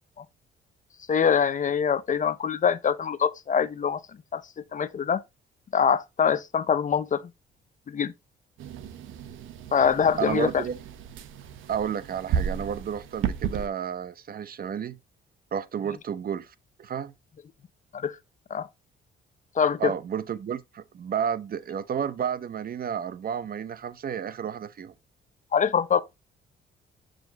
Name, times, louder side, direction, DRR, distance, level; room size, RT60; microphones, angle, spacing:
voice 1, 1.1-4.0 4.3-4.4 4.7-5.2 5.7-7.2 7.9-8.1 9.7-10.6 17.9-18.2 18.5-18.7 19.6-19.9 25.5-26.0, left 7 dB, 40° left, 0.7 m, -24 dB
sound 1, 8.6-13.7, right 8 dB, 85° right, 0.9 m, -33 dB
voice 2, 10.2-10.8 11.7-15.0 15.5-17.1 19.8-24.9, right 8 dB, 50° right, 0.8 m, -31 dB
7.1 x 5.1 x 2.9 m
cardioid pair, 90°, 20 cm